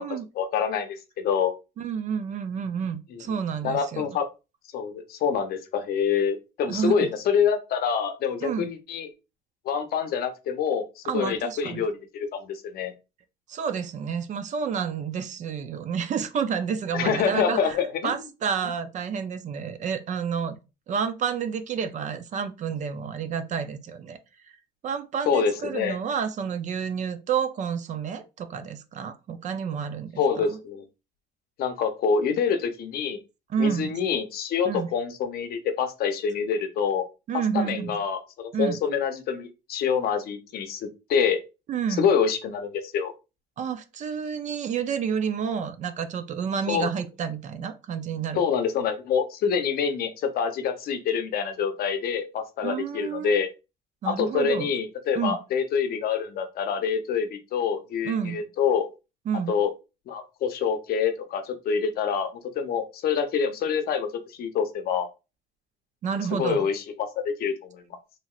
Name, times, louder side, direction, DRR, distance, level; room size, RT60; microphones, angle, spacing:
voice 1, 0.0-1.5 3.1-3.4 3.6-4.3 4.7-9.1 9.6-12.9 16.9-18.1 25.3-26.0 30.2-30.8 31.6-33.2 33.6-37.1 37.3-41.4 42.0-43.1 46.7-46.9 48.3-53.5 54.0-58.9 59.5-59.7 60.1-62.3 62.6-64.1 64.4-65.1 66.4-67.8, left 6 dB, 65° left, 0.6 m, -26 dB
voice 2, 1.8-4.1 6.7-7.0 8.4-8.7 11.0-11.8 13.5-17.8 18.0-20.6 20.9-24.2 24.8-30.6 33.5-34.0 34.7-34.9 37.3-38.0 38.5-38.8 41.7-42.1 43.6-48.5 52.6-53.4 54.0-54.7 55.2-55.4 58.0-58.4 59.3-59.6 66.0-66.7, right 7 dB, 45° right, 0.4 m, -29 dB
3.0 x 2.8 x 2.3 m
cardioid pair, 110°, 17 cm